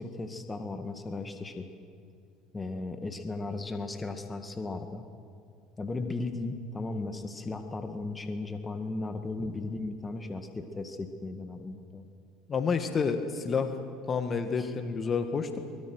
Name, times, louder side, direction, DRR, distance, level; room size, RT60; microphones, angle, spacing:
voice 1, 0.0-1.7 2.5-5.0 5.8-12.1 14.6-14.7, left 3 dB, 20° left, 7 dB, 1.9 m, -36 dB
voice 2, 12.5-13.7 14.1-15.6, left 5 dB, 35° left, 7 dB, 1.9 m, -29 dB
23.5 x 20.5 x 6.3 m, 2.3 s
hypercardioid pair, 75°, 0 cm